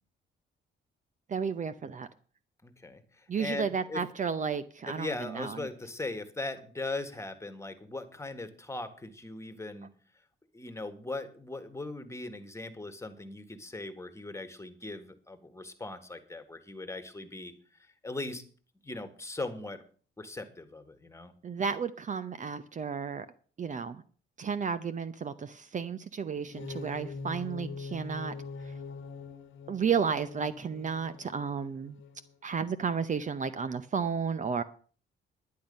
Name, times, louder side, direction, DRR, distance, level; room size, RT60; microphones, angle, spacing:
voice 1, 1.3-2.1 3.3-5.6 21.4-23.3 23.6-24.0 24.4-28.3 29.7-32.0 32.4-34.6, right 6 dB, 40° right, 13 dB, 0.7 m, -32 dB
voice 2, 2.6-4.0 4.9-9.9 10.5-17.5 18.0-18.4 18.8-19.8 20.2-21.3, left 2 dB, 15° left, 9 dB, 1.7 m, -39 dB
sound 1, 26.4-32.3, left 4 dB, 75° left, 1.4 m, -43 dB
10.5 x 10.5 x 5.3 m, 0.42 s
cardioid pair, 90°, 20 cm